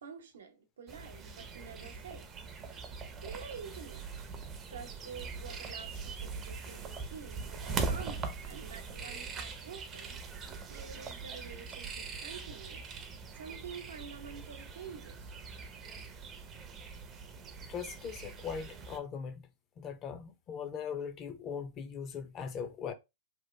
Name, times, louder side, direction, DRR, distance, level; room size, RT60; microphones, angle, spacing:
voice 1, 0.0-2.4 3.0-4.1 4.7-12.9 13.3-15.3, right 6 dB, 90° right, 0.8 m, -48 dB
sound 1, 0.9-19.0, right 4 dB, 20° right, 0.5 m, -42 dB
voice 2, 17.7-19.5 19.8-22.9, left 7 dB, 25° left, 0.5 m, -40 dB
3.0 x 2.4 x 3.1 m
hypercardioid pair, 150°, 0 cm